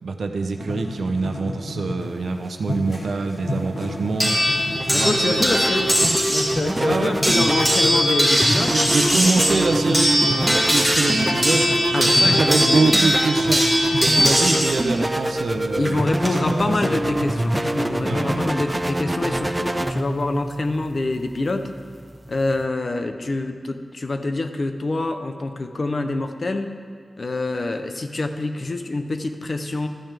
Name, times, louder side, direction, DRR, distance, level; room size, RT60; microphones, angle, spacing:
voice 1, 0.0-5.5 6.7-7.2 7.5-7.6 8.6-17.1 18.0-18.4, right 3 dB, 80° right, 5 dB, 0.7 m, -25 dB
sound 1, 0.6-2.2 2.6-9.0 9.3-18.7, left 1 dB, 65° left, 2.3 m, -32 dB
sound 2, 4.2-6.6 7.2-14.7 15.8-16.3, equal, 15° left, 2.2 m, -20 dB
sound 3, 4.4-22.6, right 1 dB, 10° right, 0.4 m, -26 dB
voice 2, 4.9-6.0 6.3-8.8 9.2-9.3 11.9-13.0 15.8-21.7 22.3-26.7 27.2-29.9, left 2 dB, 45° left, 7 dB, 0.7 m, -26 dB
13.5 x 9.1 x 3.4 m, 2.2 s
wide cardioid pair, 110°, 0 cm